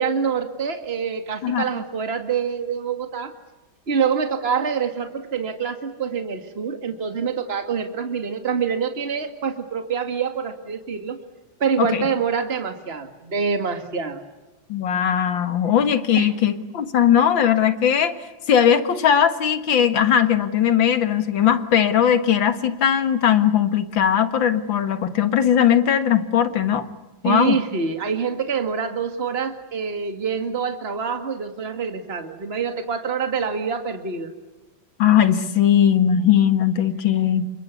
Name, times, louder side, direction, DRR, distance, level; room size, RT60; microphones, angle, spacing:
voice 1, 0.0-3.3 3.9-11.2 11.6-14.2 16.2-16.3 27.2-34.3, right 6 dB, 30° right, 7 dB, 2.2 m, -26 dB
voice 2, 14.7-18.2 18.5-26.9 27.2-27.6 35.0-37.5, left 9 dB, 80° left, 10 dB, 2.3 m, -19 dB
28.5 x 25.0 x 8.4 m, 1.1 s
omnidirectional pair, 2.1 m